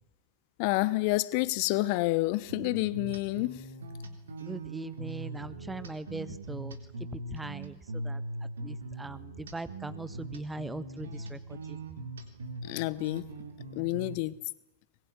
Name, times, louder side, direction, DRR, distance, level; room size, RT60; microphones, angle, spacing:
voice 1, 0.6-3.7 12.6-13.3 13.7-14.4, left 19 dB, 45° left, 1.0 m, -29 dB
sound 1, 2.5-14.2, right 2 dB, 70° right, 3.7 m, -41 dB
voice 2, 4.4-6.8 7.1-8.2 8.6-11.8, right 2 dB, 10° right, 1.4 m, -41 dB
24.0 x 22.0 x 9.7 m
figure-of-eight pair, 95°, 0 cm